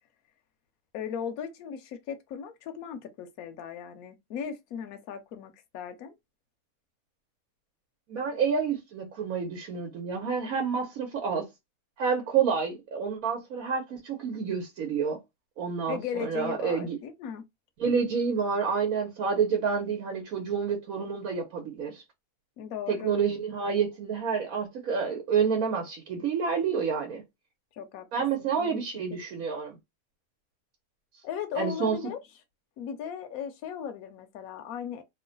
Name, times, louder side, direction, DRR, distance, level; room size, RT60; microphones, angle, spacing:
voice 1, 0.9-6.1 15.9-17.4 22.6-23.1 27.8-28.1 28.4-28.8 31.2-32.2 32.8-35.0, left 8 dB, 80° left, 1.0 m, -37 dB
voice 2, 8.1-11.5 12.0-15.2 15.6-17.0 17.8-22.0 22.9-27.2 28.1-29.8 31.5-32.0, right 6 dB, 80° right, 1.3 m, -29 dB
3.0 x 2.2 x 3.8 m
omnidirectional pair, 1.5 m